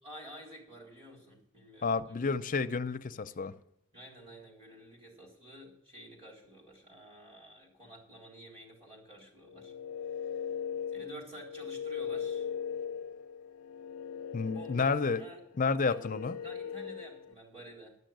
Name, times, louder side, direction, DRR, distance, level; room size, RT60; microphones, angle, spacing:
voice 1, 0.0-2.3 3.9-9.7 10.1-10.6 10.9-12.5 14.5-15.4 15.9-18.0, right 1 dB, 30° right, 3.8 m, -51 dB
voice 2, 1.8-3.5 14.3-15.2 15.6-16.4, left 4 dB, 40° left, 0.5 m, -30 dB
sound 1, 9.5-17.3, left 7 dB, 90° left, 0.4 m, -39 dB
12.0 x 6.3 x 9.2 m
head